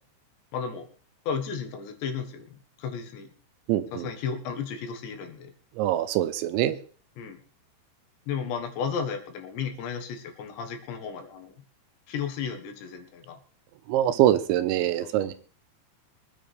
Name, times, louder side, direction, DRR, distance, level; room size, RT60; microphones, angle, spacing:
voice 1, 0.5-0.9 1.3-3.3 3.9-5.5 7.2-7.4 8.3-11.6 12.1-13.4 15.0-15.3, left 6 dB, 75° left, 5 dB, 3.7 m, -34 dB
voice 2, 3.7-4.1 5.8-6.8 13.9-15.3, right 12 dB, 90° right, 11 dB, 3.2 m, -24 dB
23.0 x 10.0 x 3.4 m, 0.41 s
omnidirectional pair, 5.2 m